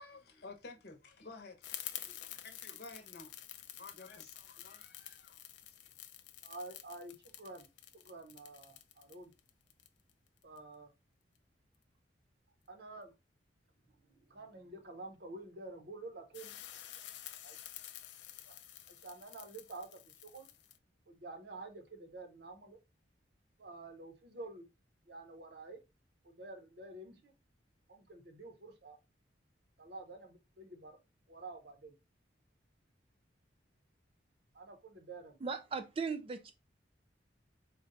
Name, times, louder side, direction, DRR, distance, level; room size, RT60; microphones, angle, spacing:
voice 1, 0.0-5.8, left 3 dB, 60° left, 0.8 m, -53 dB
sound 1, 1.6-10.6 16.3-20.8, left 12 dB, 75° left, 0.4 m, -49 dB
voice 2, 6.4-7.7 7.9-9.3 10.4-10.9 12.7-13.1 14.1-16.6 17.4-17.6 18.4-18.5 18.9-20.5 21.1-22.8 23.6-24.7 25.1-25.8 26.2-27.3 27.9-29.0 29.8-31.0 31.3-31.9 34.5-35.4, right 2 dB, 60° right, 0.8 m, -49 dB
voice 3, 35.4-36.5, right 5 dB, 30° right, 0.3 m, -38 dB
3.9 x 2.2 x 3.8 m
head